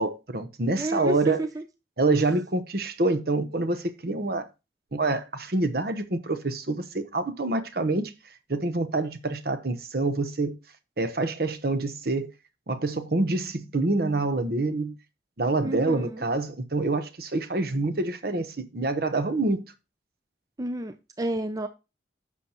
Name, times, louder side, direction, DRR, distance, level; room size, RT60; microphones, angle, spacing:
voice 1, 0.0-1.4 2.0-4.5 4.9-8.1 8.5-10.5 11.0-12.3 12.7-14.9 15.4-19.6, right 2 dB, 55° right, 0.9 m, -26 dB
voice 2, 0.8-1.6 15.6-16.2 20.6-21.7, right 2 dB, 20° right, 0.4 m, -30 dB
11.0 x 6.4 x 2.9 m
head